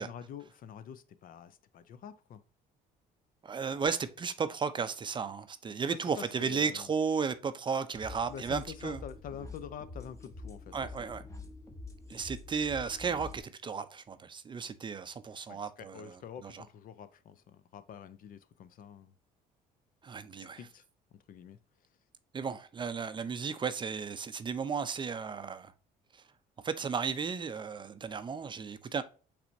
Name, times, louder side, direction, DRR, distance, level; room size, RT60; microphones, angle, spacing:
voice 1, 0.0-2.4 5.9-6.9 8.3-11.1 15.5-19.1 20.6-20.8 21.3-21.6, left 8 dB, 55° left, 0.5 m, -46 dB
voice 2, 3.4-9.0 10.7-11.2 12.1-16.6 20.0-20.7 22.3-25.7 26.6-29.0, right 5 dB, 30° right, 0.5 m, -34 dB
sound 1, 7.9-13.4, left 3 dB, 15° left, 0.8 m, -46 dB
5.7 x 3.4 x 2.6 m
cardioid pair, 110°, 17 cm